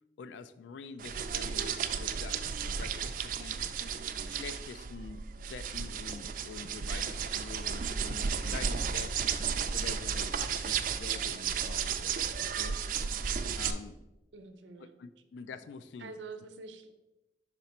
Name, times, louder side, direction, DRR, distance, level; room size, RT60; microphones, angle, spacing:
voice 1, 0.2-3.6 4.3-9.2 9.7-12.8 13.6-14.0 14.8-16.1, left 5 dB, 80° left, 13 dB, 0.3 m, -46 dB
sound 1, 1.0-13.7, right 7 dB, 45° right, 0.4 m, -33 dB
voice 2, 14.3-14.9 16.0-16.9, right 4 dB, 85° right, 8 dB, 0.7 m, -46 dB
5.8 x 4.4 x 4.1 m, 1.0 s
head